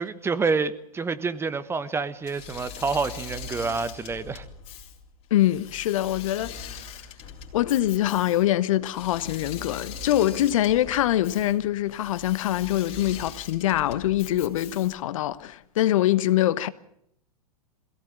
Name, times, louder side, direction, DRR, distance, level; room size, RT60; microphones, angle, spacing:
voice 1, 0.0-4.4, right 4 dB, 15° right, 1.2 m, -28 dB
Engine / Mechanisms, 2.2-15.1, left 6 dB, 35° left, 3.9 m, -41 dB
voice 2, 5.3-6.9 7.5-16.7, left 13 dB, 60° left, 1.1 m, -24 dB
22.0 x 16.5 x 9.0 m
figure-of-eight pair, 105°, 19 cm